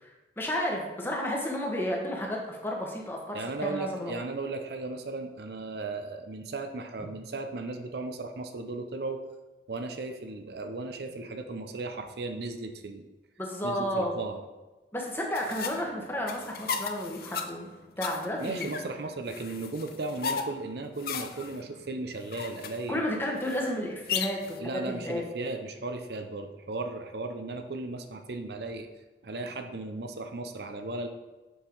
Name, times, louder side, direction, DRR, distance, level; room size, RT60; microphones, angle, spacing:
voice 1, 0.4-4.1 13.4-14.1 14.9-17.7 18.0-18.7 22.9-25.3, equal, 15° left, 0 dB, 1.2 m, -32 dB
voice 2, 3.3-9.2 9.7-13.1 13.6-14.4 18.4-23.0 24.6-28.9 29.2-31.1, right 3 dB, 65° right, 6 dB, 0.7 m, -36 dB
sound 1, 15.3-24.6, left 6 dB, 55° left, 0.6 m, -36 dB
7.2 x 5.5 x 4.6 m, 1.2 s
head